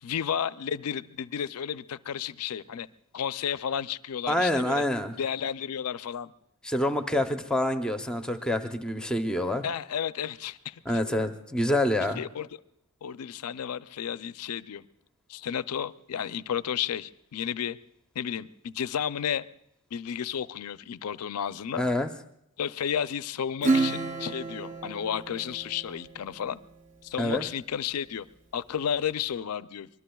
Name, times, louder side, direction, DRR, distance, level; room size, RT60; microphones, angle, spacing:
voice 1, 0.0-2.9 3.1-4.8 5.2-6.3 9.6-10.8 12.2-12.5 13.0-14.8 15.3-17.8 18.2-19.4 19.9-21.9 22.6-26.6 27.0-28.3 28.5-29.9, left 8 dB, 85° left, 15 dB, 0.4 m, -32 dB
voice 2, 4.3-5.1 6.6-9.6 10.9-12.2 21.8-22.1 27.2-27.5, left 1 dB, 5° left, 6 dB, 0.6 m, -27 dB
Acoustic guitar / Strum, 23.6-26.5, right 3 dB, 35° right, 0.7 m, -30 dB
24.5 x 21.5 x 2.3 m, 0.79 s
head